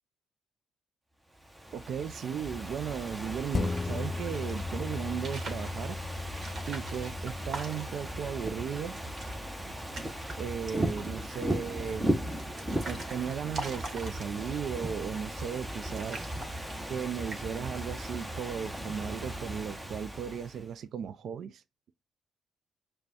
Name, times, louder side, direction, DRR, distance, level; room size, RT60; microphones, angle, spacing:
Ocean / Fireworks, 1.4-20.7, right 1 dB, 10° right, 0.8 m, -37 dB
voice 1, 1.7-6.0 6.7-9.0 10.4-12.1 12.9-16.3 16.9-21.6, right 8 dB, 65° right, 0.3 m, -36 dB
sound 1, 3.4-4.6 5.1-5.7 6.3-8.1 8.5-8.6 8.9-9.4 9.7-10.4 10.7-11.2 11.9-14.6 15.3-15.7 16.0-17.0 17.3-17.7, right 2 dB, 50° right, 1.3 m, -43 dB
sound 2, 3.5-12.3 12.8-12.9, left 3 dB, 35° left, 0.3 m, -39 dB
5.2 x 2.2 x 2.8 m
cardioid pair, 90°, 0 cm